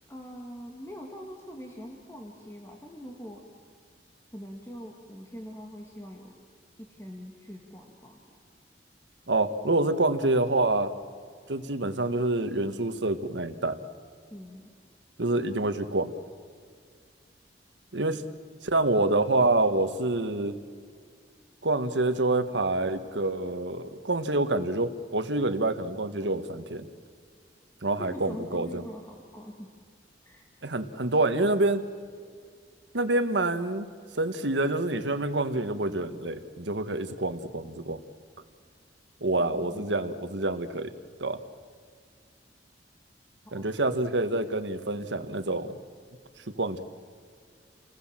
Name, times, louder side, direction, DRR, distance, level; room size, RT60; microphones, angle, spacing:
voice 1, 0.1-3.5 4.3-6.4 6.8-8.4 14.3-14.7 28.0-29.7 30.2-30.5 39.4-40.1 43.5-43.9, equal, 15° left, 0 dB, 2.2 m, -43 dB
voice 2, 9.3-10.9 11.5-13.8 15.2-16.1 17.9-18.2 18.6-20.6 21.6-26.8 27.8-28.8 30.6-31.8 32.9-33.9 34.1-38.0 39.2-40.9 41.2-41.4 43.5-45.8 46.6-46.8, right 2 dB, 80° right, 9 dB, 1.6 m, -27 dB
29.0 x 20.0 x 7.6 m, 2.1 s
head